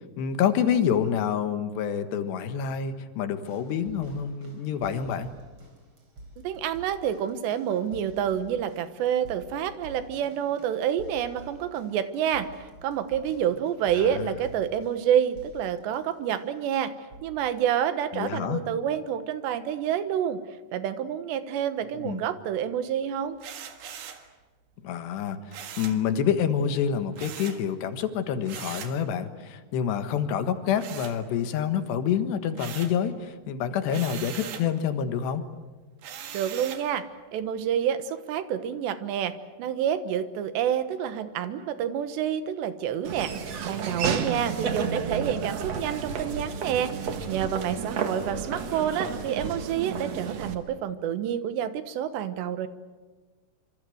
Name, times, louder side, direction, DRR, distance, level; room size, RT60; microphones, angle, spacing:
voice 1, 0.2-5.3 14.0-14.4 18.1-18.6 22.0-22.2 24.8-25.4 25.8-35.4, left 8 dB, 80° left, 9 dB, 3.7 m, -27 dB
sound 1, 3.5-16.7 17.1-17.5 18.3-18.4, right 1 dB, 30° right, 5.1 m, -49 dB
voice 2, 6.4-16.9 17.2-20.4 20.7-23.4 36.3-43.3 43.7-52.7, right 9 dB, 90° right, 11 dB, 3.5 m, -28 dB
sound 2, 23.4-24.3 25.5-26.0 27.2-27.6 28.5-29.0 30.8-31.6 32.0-33.0 33.9-34.7 36.0-36.9, right 9 dB, 70° right, 3.5 m, -40 dB
Laughter / Walk footsteps, 43.0-50.5, right 6 dB, 50° right, 2.2 m, -32 dB
26.5 x 26.0 x 7.8 m, 1.3 s
omnidirectional pair, 4.8 m